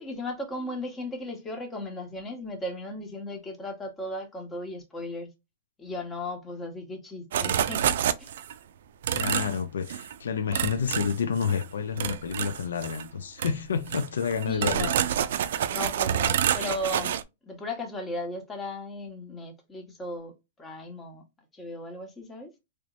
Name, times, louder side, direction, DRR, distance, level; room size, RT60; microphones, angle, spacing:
voice 1, 0.0-5.3 5.8-8.3 14.4-15.1 15.7-17.2 17.4-20.3 20.6-21.2 21.5-22.5, left 1 dB, 15° left, 1.1 m, -36 dB
sound 1, 7.3-8.5 9.0-9.6 9.9-10.1 10.5-11.6 12.0-13.1 13.4-13.5 13.9-17.2, right 10 dB, 70° right, 0.4 m, -28 dB
voice 2, 9.1-14.9, left 6 dB, 85° left, 0.4 m, -29 dB
3.2 x 3.0 x 2.5 m
hypercardioid pair, 130°, 0 cm